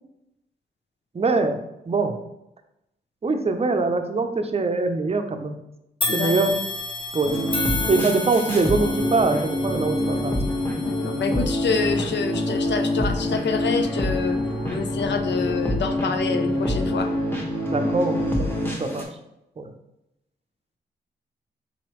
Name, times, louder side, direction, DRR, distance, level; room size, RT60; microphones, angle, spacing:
voice 1, 1.1-1.6 1.9-2.2 3.2-5.6 6.1-6.5 7.1-7.4 7.9-10.3 17.7-18.5 18.8-19.1 19.6-19.7, right 3 dB, 30° right, 6 dB, 0.6 m, -23 dB
sound 1, 6.0-15.3 15.8-16.0 17.0-17.1, left 2 dB, 25° left, 0.7 m, -33 dB
sound 2, 7.2-19.0, left 1 dB, 10° left, 1.2 m, -26 dB
voice 2, 10.8-14.4 14.7-17.1, left 5 dB, 65° left, 7 dB, 0.5 m, -27 dB
4.0 x 3.0 x 3.0 m, 0.86 s
supercardioid pair, 45°, 20 cm